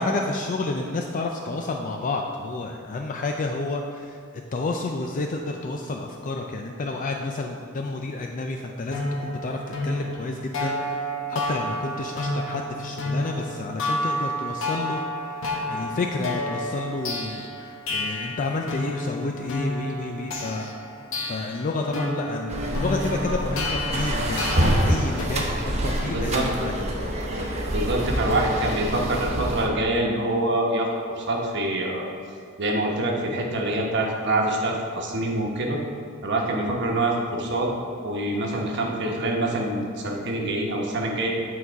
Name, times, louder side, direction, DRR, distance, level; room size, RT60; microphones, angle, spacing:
voice 1, 0.0-4.2 4.5-10.8 11.3-15.0 15.7-20.7 21.3-27.3, left 3 dB, 40° left, 3 dB, 0.4 m, -30 dB
sound 1, 8.9-25.2, left 1 dB, 70° left, 0.9 m, -30 dB
sound 2, 22.5-29.7, right 1 dB, 35° right, 1.0 m, -26 dB
voice 2, 26.1-26.7 27.3-27.4 27.7-32.1 32.6-35.8 36.2-37.7 38.0-41.3, right 1 dB, 60° right, 0 dB, 1.1 m, -25 dB
8.5 x 3.9 x 4.6 m, 2.2 s
head